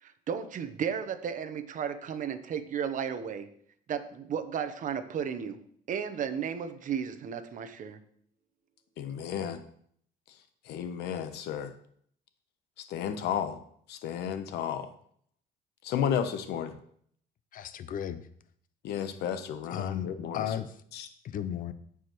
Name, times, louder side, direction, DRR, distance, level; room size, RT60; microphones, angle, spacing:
voice 1, 0.0-3.5 3.9-5.6 5.9-8.0, right 7 dB, 50° right, 8 dB, 0.9 m, -34 dB
voice 2, 9.0-9.6 10.6-11.7 12.8-13.6 13.9-14.9 15.8-16.8 18.8-20.5 20.9-21.1, left 8 dB, 80° left, 9 dB, 0.9 m, -33 dB
voice 3, 17.5-18.2 19.7-20.7 21.2-21.7, left 9 dB, 55° left, 12 dB, 0.6 m, -34 dB
14.5 x 4.9 x 3.1 m, 0.63 s
cardioid pair, 110°, 17 cm